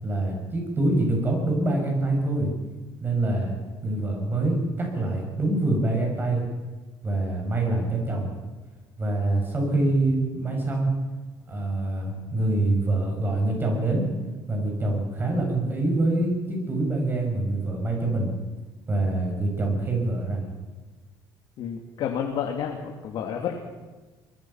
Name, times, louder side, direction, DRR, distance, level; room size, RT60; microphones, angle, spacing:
voice 1, 0.0-2.5 3.0-3.5 3.8-6.4 7.0-8.3 9.0-10.9 11.5-14.1 14.5-18.3 18.9-20.5, right 2 dB, 25° right, 1 dB, 7.1 m, -25 dB
voice 2, 21.6-23.6, left 8 dB, 60° left, 1 dB, 2.7 m, -30 dB
24.5 x 21.0 x 5.9 m, 1.3 s
cardioid pair, 145°, 9 cm